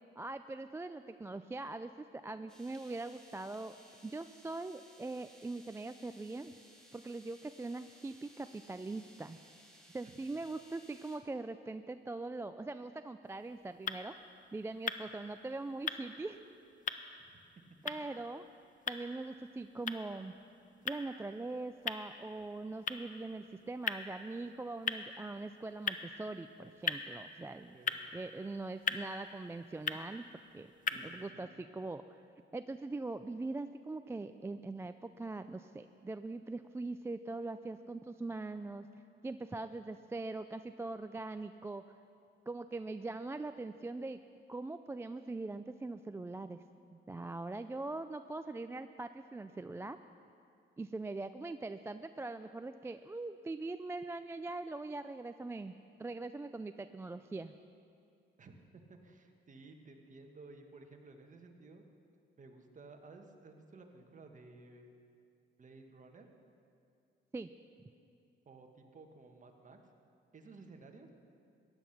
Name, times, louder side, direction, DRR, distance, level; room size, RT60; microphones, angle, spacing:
voice 1, 0.2-3.8 4.0-6.5 6.9-9.4 9.9-14.1 14.5-16.4 17.8-18.4 18.9-20.3 20.8-27.7 28.1-30.7 31.0-32.2 32.5-38.9 39.2-41.8 42.5-44.2 44.5-46.6 46.9-50.0 50.8-55.7 56.0-57.5 67.3-67.5, right 2 dB, 15° right, 10 dB, 0.3 m, -42 dB
sound 1, 2.5-11.2, equal, 5° left, 2.6 m, -61 dB
sound 2, 13.2-31.3, left 6 dB, 40° left, 0.7 m, -43 dB
voice 2, 27.5-28.0 30.9-31.5 58.4-61.8 62.4-64.9 65.6-66.3 68.4-69.8 70.3-71.1, right 3 dB, 40° right, 4 dB, 1.5 m, -55 dB
15.0 x 10.5 x 5.9 m, 2.5 s
cardioid pair, 90°, 20 cm